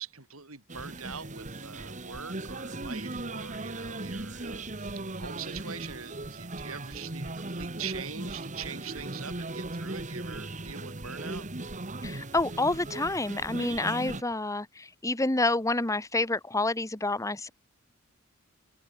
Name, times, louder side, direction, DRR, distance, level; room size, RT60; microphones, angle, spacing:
voice 1, 0.0-11.5, right 6 dB, 85° right, 6.6 m, -43 dB
sound 1, 0.7-14.2, right 2 dB, 35° right, 1.8 m, -38 dB
voice 2, 12.0-17.5, left 2 dB, 15° left, 1.3 m, -28 dB
open air
head